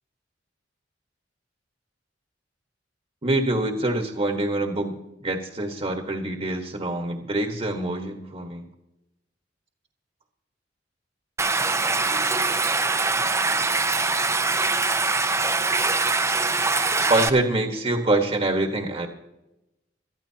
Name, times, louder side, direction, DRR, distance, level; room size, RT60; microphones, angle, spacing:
voice 1, 3.2-8.6 17.1-19.1, right 2 dB, 35° right, 3 dB, 1.4 m, -25 dB
Stream, 11.4-17.3, right 3 dB, 15° right, 0.7 m, -23 dB
21.5 x 13.5 x 2.9 m, 0.90 s
head